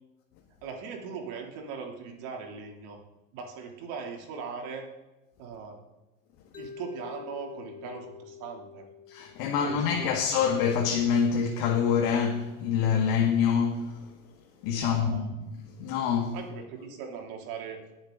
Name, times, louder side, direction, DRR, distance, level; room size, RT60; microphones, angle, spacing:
voice 1, 0.6-3.0 3.3-4.9 5.4-5.8 6.6-8.9 9.5-10.2 14.7-15.2 16.3-17.8, right 5 dB, 65° right, 3.1 m, -39 dB
Mallet percussion, 6.5-10.7, left 7 dB, 20° left, 1.4 m, -47 dB
voice 2, 9.1-14.0 14.6-15.5 15.8-16.4, left 7 dB, 65° left, 1.8 m, -26 dB
20.5 x 7.3 x 3.9 m
supercardioid pair, 110°, 40 cm